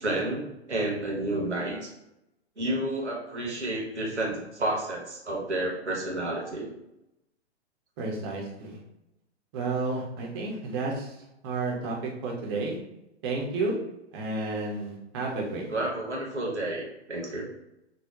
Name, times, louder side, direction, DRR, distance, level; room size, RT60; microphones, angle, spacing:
voice 1, 0.0-1.9 2.6-6.7 15.7-17.4, right 1 dB, 80° right, -2 dB, 1.0 m, -30 dB
voice 2, 8.0-8.8 9.5-12.8 13.2-13.8 14.1-15.8, right 3 dB, 25° right, -1 dB, 0.5 m, -31 dB
5.3 x 2.0 x 2.3 m, 0.88 s
figure-of-eight pair, 115°, 34 cm